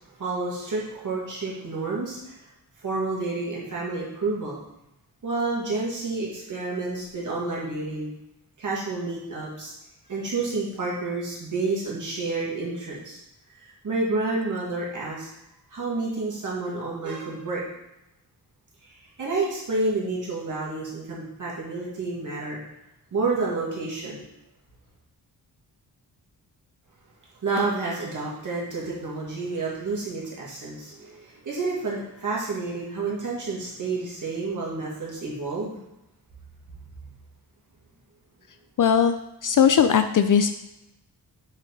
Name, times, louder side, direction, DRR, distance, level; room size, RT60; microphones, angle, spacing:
voice 1, 0.2-2.3 2.8-4.6 5.2-8.1 8.6-9.7 10.1-13.2 13.6-15.3 15.7-17.6 19.2-22.6 23.1-24.2 27.4-35.7, right 3 dB, 50° right, -5 dB, 2.2 m, -29 dB
voice 2, 38.8-40.5, left 7 dB, 55° left, 9 dB, 0.4 m, -19 dB
6.5 x 5.1 x 4.0 m, 0.89 s
wide cardioid pair, 135°, 39 cm